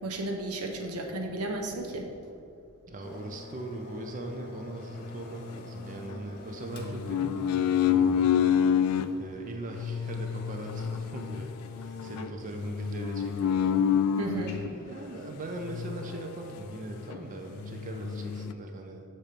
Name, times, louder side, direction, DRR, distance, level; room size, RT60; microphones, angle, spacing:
voice 1, 0.0-2.1 14.2-14.6, right 1 dB, 90° right, 2 dB, 1.0 m, -33 dB
voice 2, 2.9-7.6 7.9-8.4 9.2-13.9 14.7-19.0, right 1 dB, 35° right, 3 dB, 0.5 m, -40 dB
sound 1, 3.0-18.4, left 1 dB, 50° left, 0.9 m, -50 dB
sound 2, 5.0-6.2 6.7-9.1 9.7-14.7 15.6-16.8 17.1-17.2 17.6-18.5, left 8 dB, 80° left, 0.3 m, -29 dB
7.2 x 4.4 x 5.0 m, 2.7 s
head